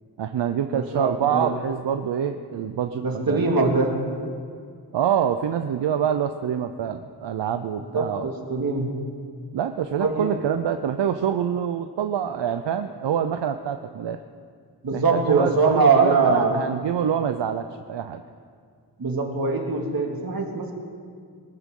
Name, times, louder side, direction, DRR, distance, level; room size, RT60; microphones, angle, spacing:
voice 1, 0.2-3.7 4.9-8.3 9.5-14.2 14.9-18.2, right 8 dB, 80° right, 8 dB, 0.7 m, -26 dB
voice 2, 0.7-1.5 3.0-4.0 7.9-8.9 10.0-10.3 14.8-16.6 19.0-20.7, right 4 dB, 55° right, 1 dB, 2.3 m, -22 dB
22.5 x 13.5 x 3.8 m, 2.1 s
wide cardioid pair, 85°, 42 cm